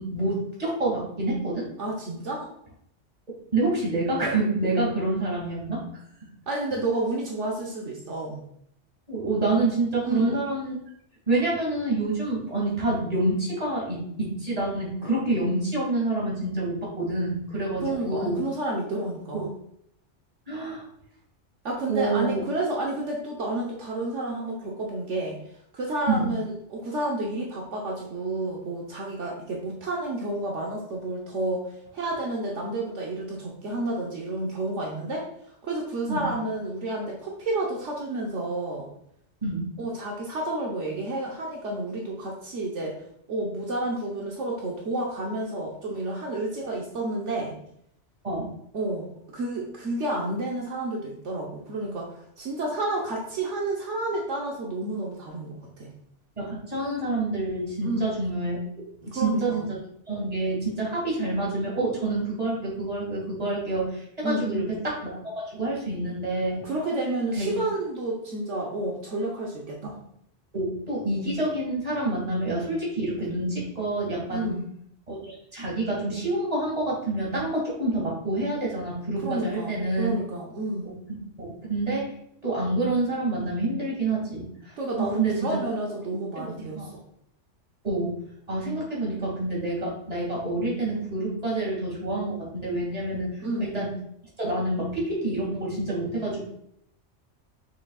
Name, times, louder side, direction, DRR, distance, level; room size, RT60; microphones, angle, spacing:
voice 1, 0.0-1.7 3.5-5.8 9.1-10.8 11.3-18.4 19.3-19.4 20.5-20.9 21.9-22.4 26.1-26.3 36.1-36.2 39.4-39.7 48.2-48.5 56.4-58.6 59.0-59.6 60.1-66.7 67.4-67.5 70.5-74.5 75.1-80.2 81.1-82.1 82.4-85.6 86.4-86.9 87.8-88.1 88.5-93.9 94.4-96.4, right 2 dB, 30° right, -4 dB, 2.3 m, -27 dB
voice 2, 1.8-2.5 6.5-8.4 10.0-10.4 17.8-19.5 21.6-25.4 25.7-35.3 35.6-38.9 39.8-43.0 43.3-47.6 48.7-55.9 57.8-58.0 59.0-59.6 64.2-64.8 66.6-70.0 74.3-74.7 79.2-80.9 84.8-87.0 93.4-93.7, right 2 dB, 75° right, -2 dB, 1.3 m, -30 dB
6.4 x 6.1 x 2.4 m, 0.71 s
omnidirectional pair, 1.3 m